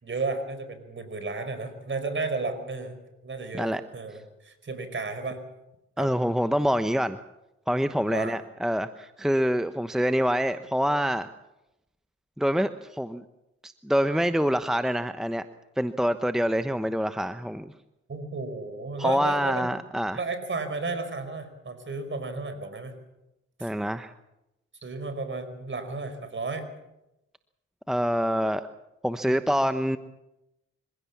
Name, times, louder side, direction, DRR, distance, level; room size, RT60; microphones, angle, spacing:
voice 1, 0.0-3.0 3.2-5.4 6.0-6.1 8.1-8.3 18.1-19.7 20.1-23.0 23.6-23.7 24.8-26.7 29.2-29.7, right 3 dB, 40° right, 10 dB, 5.0 m, -33 dB
voice 2, 6.0-7.2 7.7-11.3 12.4-13.2 13.6-15.5 15.8-17.7 19.0-20.2 23.6-24.1 27.9-28.6 29.0-30.0, equal, ahead, 11 dB, 1.0 m, -26 dB
25.5 x 16.0 x 7.3 m, 0.92 s
supercardioid pair, 60°, 29 cm